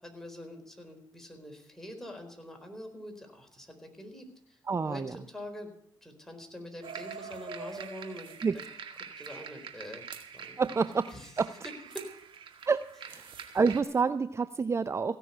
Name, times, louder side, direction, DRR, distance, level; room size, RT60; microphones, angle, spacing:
voice 1, 0.0-5.7 6.0-8.6 9.2-10.7 11.1-11.3 11.6-12.1, left 1 dB, 5° left, 3 dB, 4.2 m, -45 dB
voice 2, 4.7-5.2 8.4-8.6 10.6-11.5 12.7-15.2, right 5 dB, 30° right, 14 dB, 0.5 m, -29 dB
sound 1, 6.8-13.8, right 6 dB, 60° right, 2.0 m, -44 dB
16.5 x 6.4 x 9.9 m, 0.71 s
supercardioid pair, 60°, 10 cm